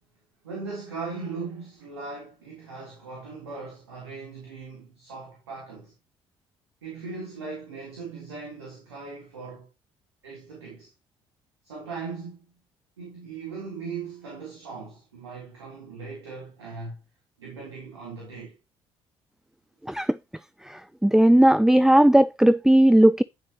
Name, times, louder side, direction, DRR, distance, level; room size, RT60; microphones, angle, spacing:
voice 1, 0.4-5.9 6.8-9.7 10.2-10.9 11.6-12.5 13.0-17.0 17.4-18.6, right 4 dB, 85° right, 3.7 m, -39 dB
voice 2, 19.9-20.2 20.6-23.2, right 1 dB, 5° right, 0.4 m, -17 dB
13.0 x 7.4 x 3.0 m
figure-of-eight pair, 45°, 13 cm